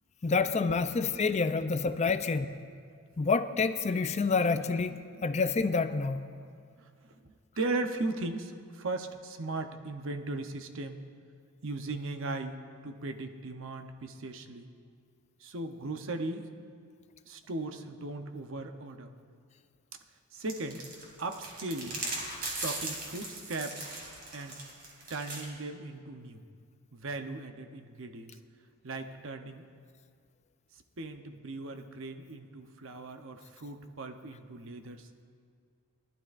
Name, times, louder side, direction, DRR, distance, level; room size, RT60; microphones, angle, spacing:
voice 1, 0.2-2.5 3.2-6.3 22.3-22.5, left 4 dB, 30° left, 11 dB, 0.4 m, -28 dB
voice 2, 7.2-11.0 11.6-14.7 15.4-16.5 17.3-19.1 20.3-20.8 21.2-22.0 22.6-23.9 24.3-24.6 25.1-26.4 26.9-28.3 28.8-29.6 31.0-35.1, right 2 dB, 60° right, 6 dB, 0.8 m, -38 dB
sound 1, 20.5-25.5, right 2 dB, 40° right, 2.7 m, -38 dB
20.0 x 12.0 x 2.5 m, 2.2 s
head